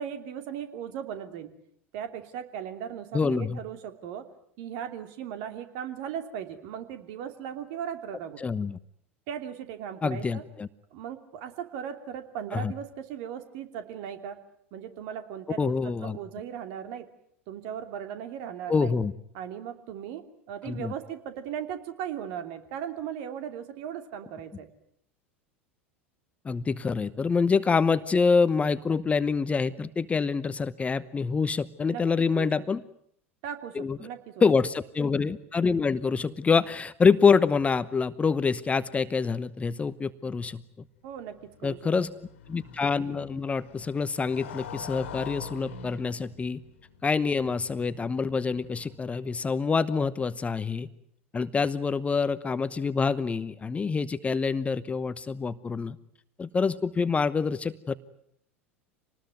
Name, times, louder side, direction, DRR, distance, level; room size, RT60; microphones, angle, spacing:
voice 1, 0.0-1.5 1.9-4.2 4.6-8.4 9.3-10.4 10.9-14.4 14.7-17.1 17.5-18.9 19.3-24.7 31.9-32.5 33.4-34.5 41.0-41.8, right 9 dB, 55° right, 8 dB, 2.9 m, -37 dB
voice 2, 3.1-3.6 8.4-8.8 10.0-10.7 12.5-12.7 15.6-16.2 18.7-19.1 20.6-20.9 26.4-32.8 33.7-34.0 34.4-40.6 41.6-42.1 42.5-46.6 47.0-50.9 51.3-56.0 56.4-58.0, left 5 dB, 20° left, 15 dB, 1.0 m, -26 dB
Motorcycle, 41.1-49.2, left 6 dB, 70° left, 2.3 m, -45 dB
26.5 x 19.5 x 9.3 m, 0.70 s
figure-of-eight pair, 80°, 7 cm